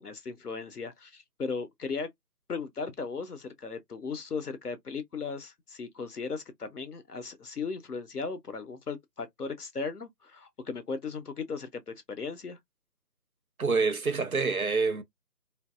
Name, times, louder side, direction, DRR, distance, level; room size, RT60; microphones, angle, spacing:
voice 1, 0.0-2.1 2.5-12.6, left 4 dB, 70° left, 0.8 m, -37 dB
voice 2, 13.6-15.0, right 4 dB, 60° right, 0.6 m, -27 dB
2.8 x 2.6 x 2.3 m
figure-of-eight pair, 170°, 49 cm